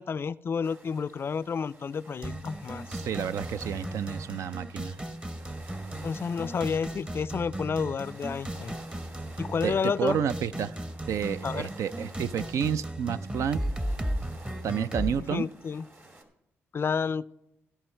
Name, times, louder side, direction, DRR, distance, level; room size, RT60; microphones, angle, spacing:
voice 1, 0.0-2.8 6.0-8.8 9.4-10.2 11.4-11.7 15.3-15.9 16.7-17.2, left 6 dB, 45° left, 19 dB, 0.3 m, -30 dB
sound 1, 0.6-16.2, right 2 dB, 45° right, 2.4 m, -52 dB
sound 2, 2.2-15.1, right 1 dB, 20° right, 0.9 m, -36 dB
voice 2, 2.9-5.0 9.6-10.8 11.1-13.6 14.6-15.5, right 8 dB, 70° right, 14 dB, 0.4 m, -30 dB
16.0 x 5.6 x 4.5 m, 0.87 s
supercardioid pair, 50°, 5 cm